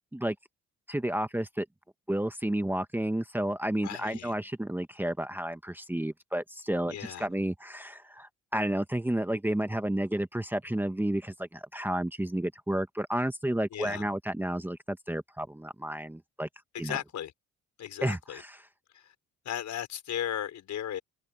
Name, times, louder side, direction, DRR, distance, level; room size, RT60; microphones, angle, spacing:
voice 1, 0.9-1.6 2.1-16.5 16.8-17.0 18.0-18.6, right 1 dB, 5° right, 1.2 m, -31 dB
voice 2, 3.8-4.3 6.9-7.3 13.7-14.1 16.7-17.3 17.8-18.4 18.9-19.0 19.5-21.0, left 10 dB, 70° left, 5.7 m, -36 dB
cardioid pair, 90°, 30 cm